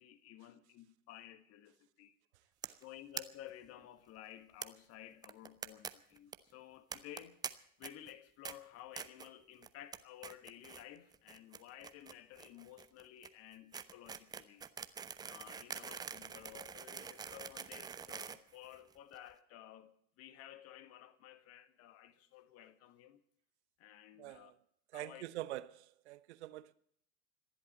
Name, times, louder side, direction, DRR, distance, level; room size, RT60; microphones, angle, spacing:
voice 1, 0.0-2.1 2.8-7.5 7.8-14.6 15.3-23.2 23.8-24.5 24.9-25.2, left 12 dB, 35° left, 1.7 m, -54 dB
sound 1, 2.6-2.8 3.1-3.2 3.5-3.6 3.8-3.9 4.6-4.7 5.2-5.9 6.2-6.4 6.9-7.5 7.8-8.1 8.4-8.5 9.0-9.3 9.6-10.0 10.2-10.8 11.1-19.2, right 6 dB, 10° right, 0.6 m, -45 dB
voice 2, 24.2-24.5 24.9-26.7, right 15 dB, 50° right, 1.1 m, -45 dB
26.5 x 11.0 x 4.3 m
figure-of-eight pair, 90°, 43 cm